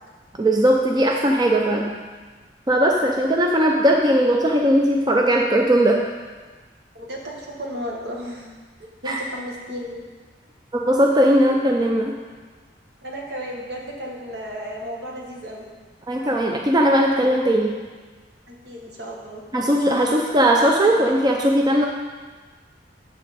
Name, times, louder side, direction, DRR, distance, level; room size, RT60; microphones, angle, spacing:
voice 1, 0.4-1.9 2.7-6.0 9.1-9.2 10.7-12.1 16.1-17.7 19.5-21.9, right 1 dB, 25° right, 0 dB, 0.5 m, -18 dB
voice 2, 6.9-8.5 8.8-10.0 13.0-15.6 18.5-19.4, equal, 70° right, -1 dB, 1.5 m, -34 dB
7.7 x 7.2 x 4.2 m, 1.4 s
head